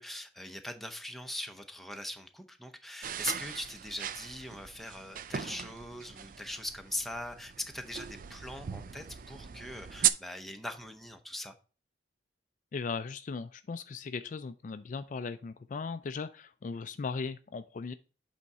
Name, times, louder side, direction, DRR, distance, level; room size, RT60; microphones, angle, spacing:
voice 1, 0.0-11.5, left 1 dB, ahead, 5 dB, 0.7 m, -41 dB
sound 1, 3.0-10.1, right 10 dB, 50° right, 0.4 m, -37 dB
voice 2, 12.7-17.9, left 4 dB, 45° left, 11 dB, 0.3 m, -38 dB
8.2 x 3.6 x 4.1 m, 0.35 s
head